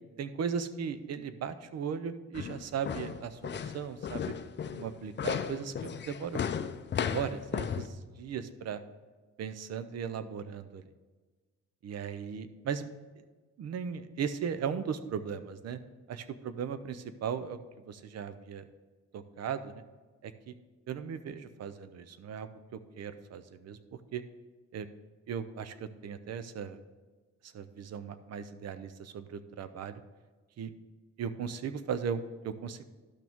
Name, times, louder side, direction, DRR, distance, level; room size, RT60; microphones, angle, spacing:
voice 1, 0.2-4.3 4.7-6.4 7.1-8.8 9.4-10.9 11.8-12.9 13.6-15.8 16.1-17.6 17.9-18.7 19.1-19.8 20.2-20.5 20.9-23.8 24.1-24.2 24.7-24.9 25.3-26.8 27.4-30.0 30.6-30.7 31.2-32.8, right 7 dB, 55° right, 12 dB, 0.7 m, -37 dB
sound 1, 2.3-7.9, left 7 dB, 35° left, 0.5 m, -35 dB
12.0 x 6.0 x 3.6 m, 1.3 s
cardioid pair, 90°, 30 cm